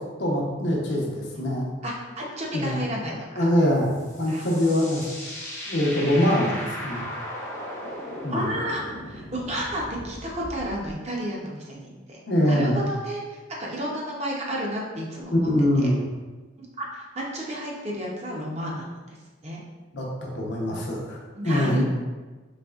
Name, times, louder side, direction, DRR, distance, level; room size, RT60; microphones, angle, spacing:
voice 1, 0.2-1.7 2.5-2.8 3.3-3.9 4.2-5.0 5.7-7.0 8.2-8.5 12.3-12.8 15.3-16.0 19.9-21.2 21.4-21.8, left 1 dB, 60° left, -2 dB, 0.7 m, -23 dB
voice 2, 1.8-3.5 4.3-4.5 5.6-5.7 8.3-15.5 15.8-15.9 16.6-18.8 19.4-19.6 21.3-21.8, equal, 35° right, -3 dB, 0.6 m, -32 dB
sound 1, 3.8-10.9, left 1 dB, 15° left, 0.6 m, -37 dB
4.1 x 3.2 x 2.3 m, 1.3 s
head